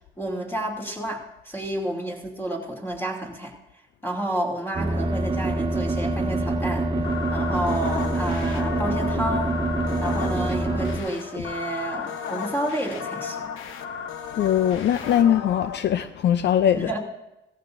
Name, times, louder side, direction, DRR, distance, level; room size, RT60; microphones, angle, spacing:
voice 1, 0.2-3.5 4.0-6.9 7.3-9.6 10.0-13.5 16.9-17.0, right 1 dB, 10° left, 2.8 m, -30 dB
sound 1, 4.7-11.0, right 2 dB, 25° right, 1.6 m, -25 dB
sound 2, 7.0-15.8, left 7 dB, 85° left, 1.0 m, -34 dB
voice 2, 14.3-16.9, left 10 dB, 60° left, 0.5 m, -21 dB
16.5 x 15.0 x 2.6 m
cardioid pair, 90°, 20 cm